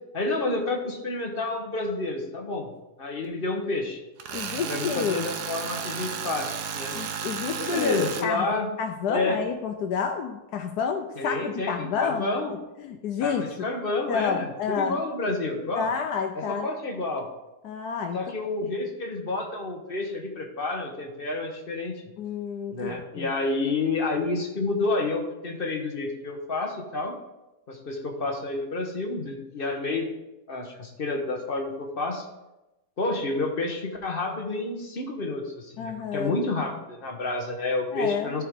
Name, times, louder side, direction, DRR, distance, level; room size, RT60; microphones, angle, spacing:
voice 1, 0.1-2.7 3.0-4.0 4.7-7.0 7.6-8.7 9.1-9.4 11.2-12.5 13.2-15.9 16.4-17.3 18.1-21.9 22.7-27.1 27.7-30.1 30.5-32.3 33.0-38.4, left 2 dB, 40° left, 2 dB, 1.2 m, -29 dB
Tools, 4.2-8.3, right 7 dB, 80° right, 1.3 m, -33 dB
voice 2, 4.3-5.3 6.9-8.5 8.8-12.6 12.8-13.7 14.1-15.0 15.7-16.7 17.6-18.2 22.2-23.3 35.8-36.4 37.9-38.3, left 6 dB, 80° left, 4 dB, 1.2 m, -29 dB
13.0 x 4.9 x 3.7 m, 0.99 s
omnidirectional pair, 1.7 m